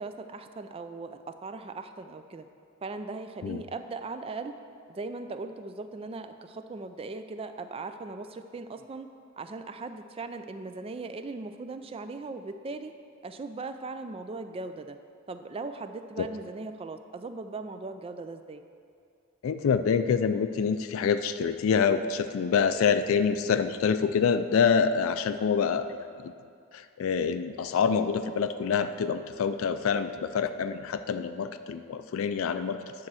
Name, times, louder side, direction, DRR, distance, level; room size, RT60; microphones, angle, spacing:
voice 1, 0.0-2.5 2.8-4.5 4.9-9.1 9.4-12.9 13.2-15.0 15.3-18.6, right 3 dB, 25° right, 9 dB, 0.4 m, -39 dB
voice 2, 19.4-26.3 26.7-33.1, left 6 dB, 70° left, 10 dB, 0.3 m, -26 dB
9.7 x 4.3 x 6.2 m, 2.3 s
head